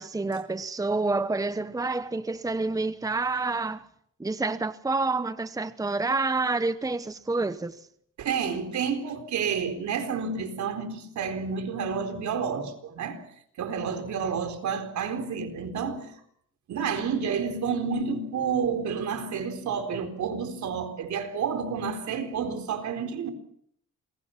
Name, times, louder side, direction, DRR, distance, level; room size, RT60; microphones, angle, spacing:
voice 1, 0.0-3.9 4.2-7.8, right 3 dB, 10° right, 1.0 m, -28 dB
voice 2, 8.2-13.2 13.6-16.1 16.7-23.3, right 6 dB, 70° right, 4.3 m, -30 dB
28.0 x 23.0 x 5.9 m
cardioid pair, 90°, 30 cm